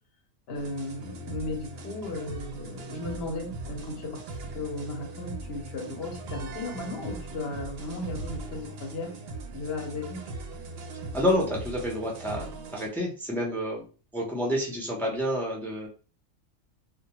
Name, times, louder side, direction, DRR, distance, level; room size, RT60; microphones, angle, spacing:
voice 1, 0.5-4.2 4.5-9.1 9.5-10.2, left 2 dB, 55° left, 2 dB, 0.9 m, -35 dB
sound 1, 0.5-12.9, right 2 dB, 65° right, 0.7 m, -40 dB
voice 2, 11.1-13.8 14.1-15.9, equal, 5° left, -2 dB, 0.4 m, -29 dB
2.2 x 2.2 x 2.9 m, 0.37 s
omnidirectional pair, 1.3 m